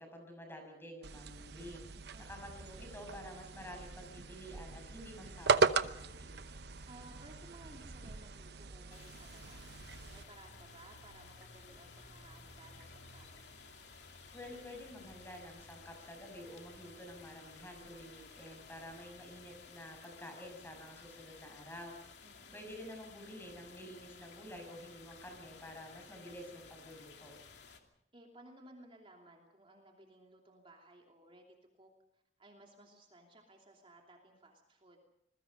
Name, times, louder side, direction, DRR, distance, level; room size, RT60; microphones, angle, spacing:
voice 1, 0.0-1.8 2.2-6.4 14.3-21.9 22.5-27.3, equal, 15° left, 4 dB, 6.4 m, -50 dB
sound 1, 1.0-10.2, right 4 dB, 65° right, 0.9 m, -37 dB
voice 2, 2.1-2.5 6.8-9.7 10.1-13.6 22.2-22.6 27.8-31.5 31.8-35.0, right 2 dB, 30° right, 1 dB, 2.9 m, -58 dB
sound 2, 2.3-19.2, right 2 dB, 85° right, 2.6 m, -61 dB
sound 3, 8.9-27.8, left 4 dB, 75° left, 2.6 m, -56 dB
26.5 x 21.0 x 5.4 m, 0.78 s
head